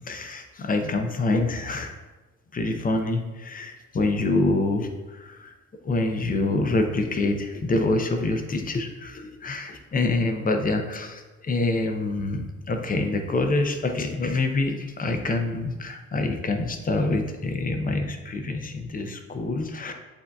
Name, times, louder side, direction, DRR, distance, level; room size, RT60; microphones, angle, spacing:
voice 1, 0.1-1.9 2.5-5.5 5.8-19.9, left 2 dB, 30° left, 5 dB, 0.6 m, -26 dB
7.6 x 2.8 x 2.3 m, 1.2 s
cardioid pair, 90°, 30 cm